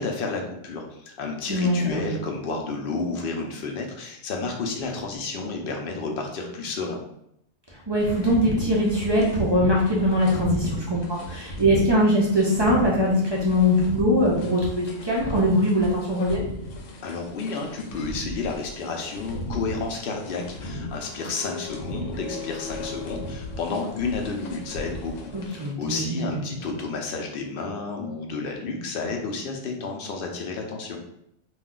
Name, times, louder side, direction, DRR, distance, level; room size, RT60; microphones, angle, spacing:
voice 1, 0.0-7.0 17.0-31.0, left 4 dB, 60° left, 2 dB, 0.7 m, -31 dB
voice 2, 1.5-2.1 7.9-16.4 25.3-26.3, equal, 45° right, -5 dB, 0.3 m, -22 dB
sound 1, 8.0-25.7, left 1 dB, 85° left, 0.9 m, -36 dB
2.4 x 2.2 x 3.7 m, 0.77 s
omnidirectional pair, 1.2 m